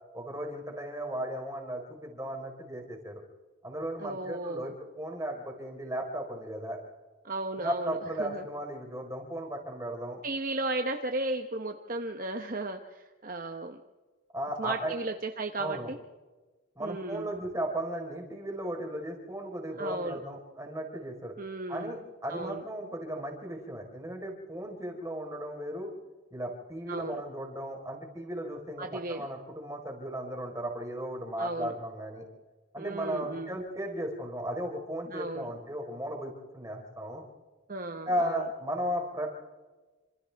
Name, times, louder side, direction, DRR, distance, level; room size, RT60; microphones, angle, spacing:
voice 1, 0.1-3.2 3.6-6.8 7.6-10.2 14.3-15.0 15.6-15.9 16.8-21.3 21.7-25.9 26.3-32.2 32.7-37.2 38.1-39.3, right 1 dB, 15° right, 1 dB, 4.3 m, -36 dB
voice 2, 4.0-4.7 7.2-8.4 10.2-13.8 14.6-16.0 16.8-17.3 19.8-20.2 21.4-21.9 22.3-22.6 26.9-27.2 28.8-29.3 31.4-31.7 32.8-33.6 35.1-35.5 37.7-38.5, right 2 dB, 40° right, 5 dB, 1.0 m, -35 dB
27.5 x 26.5 x 3.5 m, 1.3 s
head